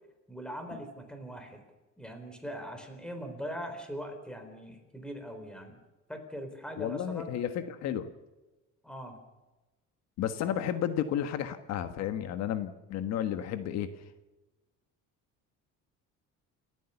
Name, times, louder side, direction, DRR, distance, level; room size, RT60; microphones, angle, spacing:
voice 1, 0.3-1.6 2.0-5.8 6.1-7.4 8.8-9.2, equal, 5° left, 6 dB, 4.0 m, -41 dB
voice 2, 6.8-8.1 10.2-13.9, left 10 dB, 60° left, 9 dB, 1.4 m, -32 dB
29.0 x 14.5 x 7.0 m, 1.1 s
cardioid pair, 160°, 29 cm